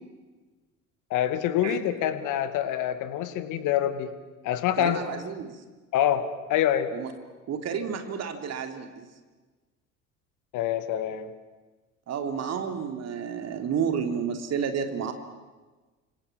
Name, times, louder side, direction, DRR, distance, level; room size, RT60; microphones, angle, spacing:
voice 1, 1.1-4.1 4.4-5.2 5.9-6.2 6.5-6.9 10.5-11.3, left 11 dB, 50° left, 11 dB, 2.3 m, -26 dB
voice 2, 4.8-5.6 6.9-7.1 7.5-9.1 12.1-15.1, right 7 dB, 40° right, 5 dB, 3.2 m, -31 dB
29.5 x 26.5 x 7.5 m, 1.3 s
figure-of-eight pair, 60°, 39 cm